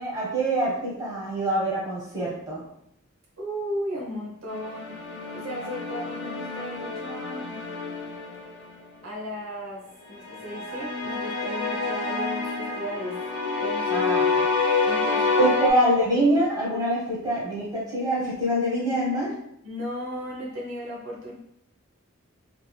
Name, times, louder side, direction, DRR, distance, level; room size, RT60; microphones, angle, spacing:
voice 1, 0.0-2.6 13.9-14.5 15.4-19.3, right 1 dB, 20° right, -6 dB, 1.1 m, -25 dB
voice 2, 3.4-5.0 5.3-7.6 9.0-9.8 10.1-13.2 13.6-14.0 14.8-15.5 15.7-15.8 19.6-21.3, equal, 80° right, -3 dB, 0.9 m, -35 dB
sound 1, 4.5-8.8 10.3-15.7, left 4 dB, 55° left, 0.6 m, -28 dB
3.4 x 2.7 x 2.3 m, 0.73 s
head